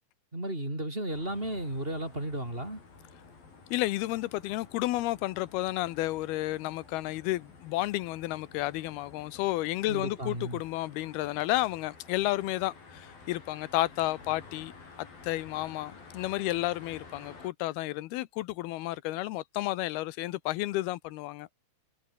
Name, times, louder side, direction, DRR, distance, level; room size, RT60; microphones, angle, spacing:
voice 1, 0.3-2.8 9.9-10.6, right 1 dB, 15° right, 6.7 m, -34 dB
sound 1, 1.1-17.5, left 4 dB, 65° left, 8.7 m, -52 dB
voice 2, 3.7-14.7 15.0-21.5, left 17 dB, 90° left, 2.8 m, -31 dB
omnidirectional pair, 4.4 m